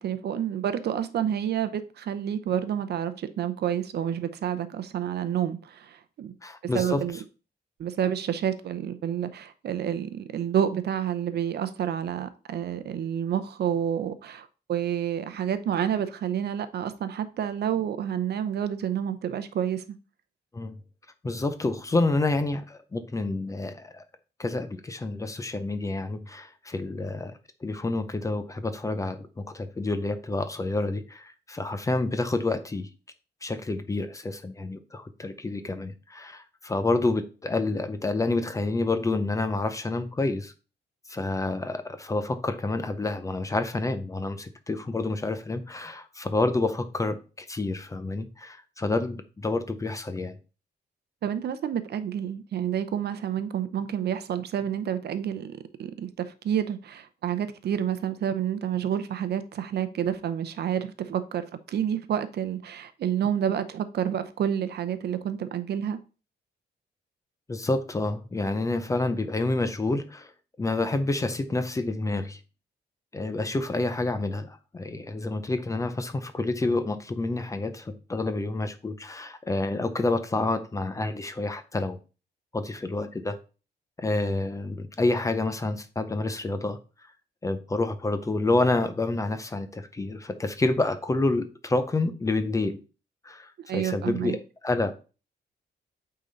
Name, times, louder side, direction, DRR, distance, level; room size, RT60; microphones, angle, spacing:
voice 1, 0.0-6.3 6.6-7.2 7.8-19.8 51.2-66.0 93.7-94.4, right 9 dB, 70° right, 0.7 m, -29 dB
voice 2, 6.4-7.0 20.5-20.8 21.2-24.0 24.4-27.3 27.6-32.9 33.4-40.5 41.1-50.4 67.5-70.3 70.6-72.4 73.1-82.0 82.5-83.4 84.0-86.8 87.4-92.8 93.2-94.9, left 2 dB, 20° left, 0.5 m, -28 dB
8.5 x 3.9 x 4.0 m
wide cardioid pair, 180°, 18 cm